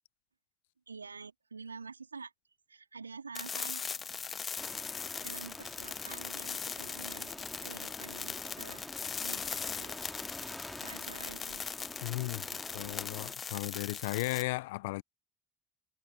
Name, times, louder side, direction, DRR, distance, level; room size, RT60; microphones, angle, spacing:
voice 1, 0.9-2.3 2.7-3.9 5.2-8.9 9.2-9.9 10.8-11.6 12.3-12.4, right 5 dB, 85° right, 3.3 m, -48 dB
sound 1, 3.3-14.4, left 6 dB, 30° left, 0.7 m, -40 dB
sound 2, 4.6-13.3, left 1 dB, 5° left, 3.0 m, -48 dB
voice 2, 12.0-12.4 12.7-15.0, left 21 dB, 65° left, 0.6 m, -35 dB
figure-of-eight pair, 60°, 0 cm